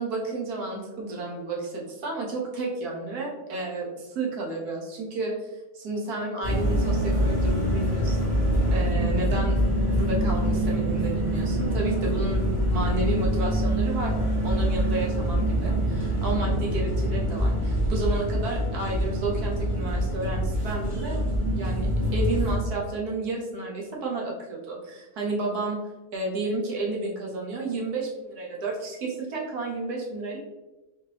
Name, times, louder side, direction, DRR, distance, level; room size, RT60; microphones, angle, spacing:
voice 1, 0.0-8.4 8.7-9.6 9.9-14.2 14.4-21.2 21.5-21.9 22.1-25.8 26.1-30.4, right 3 dB, 85° right, -2 dB, 1.5 m, -32 dB
sound 1, 6.4-22.6, equal, 30° left, 1.1 m, -25 dB
4.2 x 2.9 x 3.2 m, 1.1 s
omnidirectional pair, 1.6 m